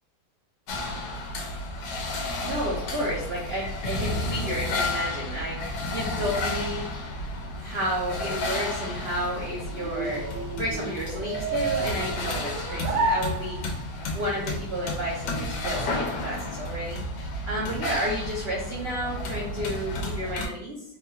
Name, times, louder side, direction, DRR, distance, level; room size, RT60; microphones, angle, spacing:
sound 1, 0.7-20.5, left 2 dB, 85° left, 1.3 m, -32 dB
voice 1, 2.4-6.9 7.6-10.3 10.6-13.6 14.1-17.0 17.5-20.8, equal, 60° right, -5 dB, 0.7 m, -31 dB
sound 2, 9.1-14.0, right 3 dB, 85° right, 1.2 m, -31 dB
3.9 x 2.3 x 2.8 m, 0.72 s
omnidirectional pair, 1.8 m